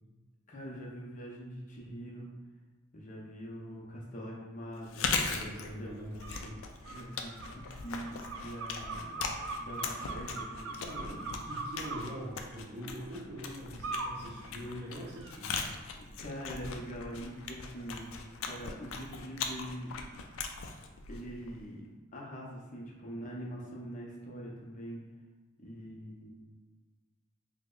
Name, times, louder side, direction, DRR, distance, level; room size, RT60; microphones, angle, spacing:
voice 1, 0.5-2.3 2.9-5.1 5.8-5.9 6.9-8.1 8.4-9.2 9.6-10.8 11.1-11.5 15.9-18.1 18.5-19.9 21.1-21.8 22.1-25.0 25.6-26.3, equal, 40° left, -3 dB, 0.6 m, -43 dB
Chewing mastication, 4.8-21.7, left 5 dB, 75° left, 0.3 m, -40 dB
voice 2, 5.3-6.6 10.8-11.1 11.4-15.6, equal, 30° right, -10 dB, 0.6 m, -43 dB
sound 1, 6.2-6.4 6.8-12.0 13.8-14.1 14.6-15.3, right 4 dB, 80° right, 0.4 m, -41 dB
3.3 x 2.1 x 3.7 m, 1.3 s
head